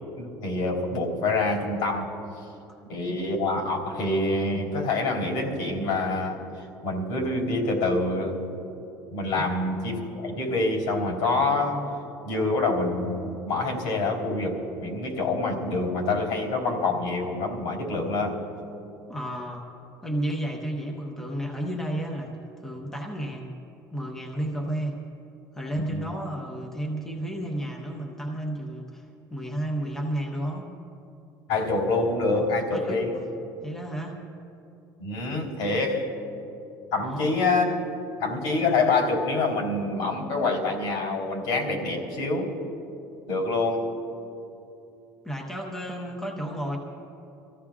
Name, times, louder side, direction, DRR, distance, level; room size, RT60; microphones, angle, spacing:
voice 1, 0.2-2.1 2.9-8.5 9.1-11.8 12.2-18.4 25.8-26.1 31.5-33.1 35.0-36.1 36.9-37.8 38.2-42.5 43.3-43.9, left 2 dB, 80° left, 0 dB, 3.5 m, -26 dB
voice 2, 19.1-19.6 20.0-22.3 22.6-23.5 23.9-25.0 25.5-30.7 32.7-33.0 33.6-34.2 37.0-37.3 45.2-46.8, right 1 dB, 5° left, -1 dB, 0.9 m, -32 dB
26.0 x 15.0 x 2.4 m, 2.7 s
cardioid pair, 175°, 7 cm